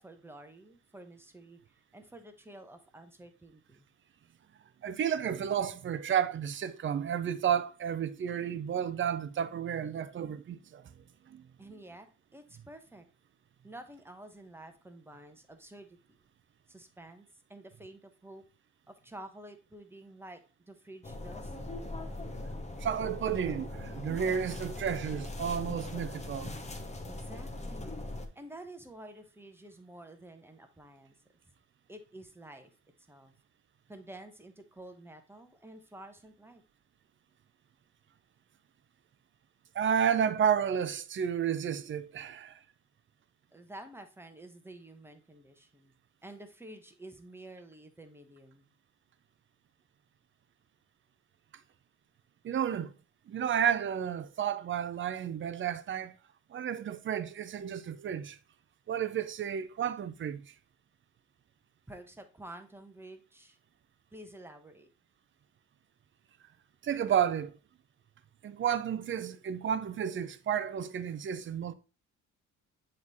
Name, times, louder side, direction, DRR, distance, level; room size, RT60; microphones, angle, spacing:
voice 1, 0.0-1.6 1.9-3.9 11.6-13.0 13.6-16.0 16.7-18.4 18.9-21.5 27.1-28.0 28.3-31.1 31.9-32.7 33.1-33.3 33.9-36.6 43.5-45.9 46.2-48.7 61.9-63.6 64.1-64.9, right 1 dB, 10° right, 1.0 m, -50 dB
voice 2, 4.8-10.8 11.3-11.5 22.8-26.5 39.7-42.6 52.4-52.9 53.3-56.2 56.5-58.4 58.9-60.4 66.8-67.5 68.4-71.7, right 8 dB, 40° right, 0.6 m, -31 dB
sound 1, 21.0-28.3, left 2 dB, 20° left, 1.0 m, -40 dB
7.3 x 3.3 x 4.0 m
cardioid pair, 90°, 30 cm